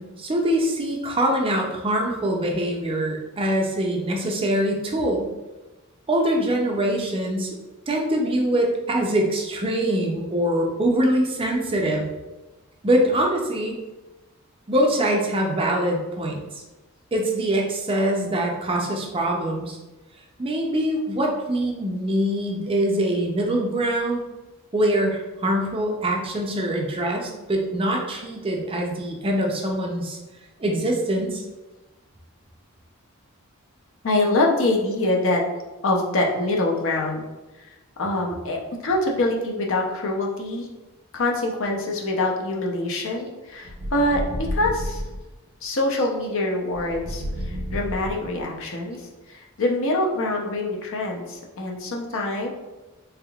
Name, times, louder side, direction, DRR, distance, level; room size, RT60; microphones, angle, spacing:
voice 1, 0.0-5.3 6.1-7.5 7.9-12.1 12.8-13.8 14.7-16.6 17.1-19.8 20.4-24.2 24.7-30.2 30.6-31.4, right 1 dB, 25° right, 1 dB, 0.5 m, -23 dB
voice 2, 34.0-35.4 35.8-37.2 37.6-37.7 38.0-40.7 41.1-45.0 45.6-52.5, left 2 dB, 60° left, 0 dB, 0.6 m, -25 dB
sound 1, 43.6-45.2 46.7-48.6, equal, 70° right, 0.8 m, -31 dB
3.5 x 3.4 x 2.3 m, 1.1 s
head